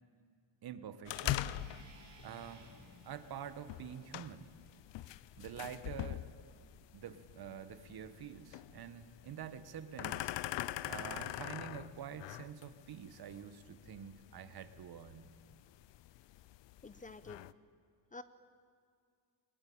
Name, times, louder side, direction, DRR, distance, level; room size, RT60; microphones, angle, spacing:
voice 1, 0.6-1.5 2.2-2.7 3.0-4.5 5.4-6.3 6.9-10.3 10.8-15.3, right 8 dB, 55° right, 12 dB, 1.4 m, -47 dB
sound 1, 1.1-17.5, left 14 dB, 70° left, 0.7 m, -44 dB
sound 2, 1.5-5.6, right 3 dB, 40° right, 5.2 m, -60 dB
voice 2, 16.8-17.4 18.1-18.2, left 3 dB, 20° left, 12 dB, 0.7 m, -48 dB
22.0 x 20.0 x 8.7 m, 2.2 s
cardioid pair, 125°, 45 cm